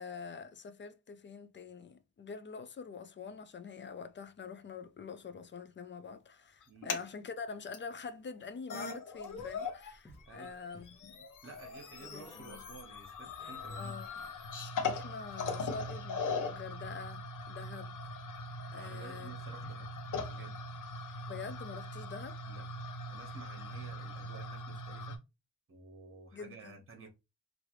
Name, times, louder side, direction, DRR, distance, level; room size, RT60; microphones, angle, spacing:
voice 1, 0.0-11.2 12.1-12.6 13.7-14.1 14.8-18.0 18.7-19.3 21.3-22.4 26.3-26.8, left 5 dB, 35° left, 0.4 m, -45 dB
sound 1, 6.6-7.1 7.7-7.8 8.4-8.5 8.7-9.9 10.2-25.2, left 3 dB, 65° left, 0.7 m, -40 dB
sound 2, 9.2-14.5, left 1 dB, 20° left, 1.1 m, -58 dB
voice 2, 11.4-13.9 18.7-19.9 20.3-20.6 22.5-25.2 25.7-27.1, right 3 dB, 40° right, 1.2 m, -52 dB
3.1 x 2.6 x 3.0 m
cardioid pair, 105°, 33 cm